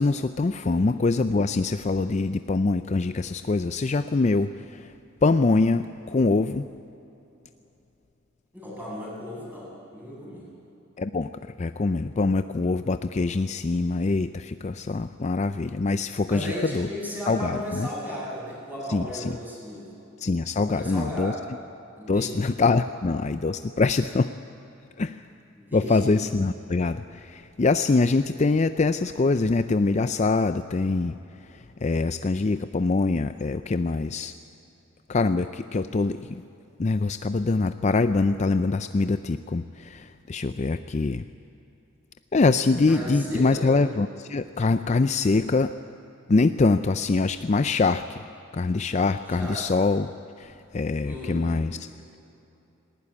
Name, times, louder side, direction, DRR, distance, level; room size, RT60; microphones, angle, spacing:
voice 1, 0.0-4.9 5.2-6.6 11.0-11.3 11.6-16.9 17.3-17.9 18.9-19.3 20.2-21.3 22.1-24.3 25.0-25.2 25.7-31.1 31.8-34.3 35.1-36.4 36.8-41.2 42.3-45.7 46.3-48.2 48.5-50.1 50.4-51.8, left 3 dB, 35° left, 11 dB, 0.4 m, -24 dB
voice 2, 8.5-10.5 16.3-19.9 20.6-21.4 22.0-22.4 25.5-26.1 42.9-43.7 49.3-49.6 51.0-51.5, left 1 dB, 10° right, -6 dB, 7.8 m, -35 dB
20.0 x 18.5 x 9.8 m, 2.9 s
head